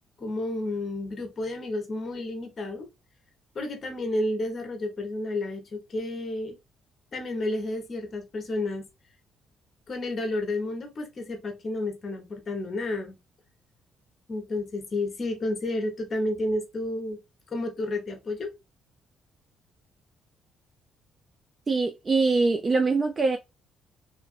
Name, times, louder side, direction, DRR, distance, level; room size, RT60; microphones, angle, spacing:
voice 1, 0.2-2.9 3.5-6.6 7.1-8.9 9.9-13.2 14.3-17.2 17.5-18.5, left 2 dB, 35° left, 0.9 m, -31 dB
voice 2, 21.7-23.4, right 3 dB, 25° right, 0.3 m, -23 dB
3.1 x 2.4 x 2.4 m
cardioid pair, 135°, 0 cm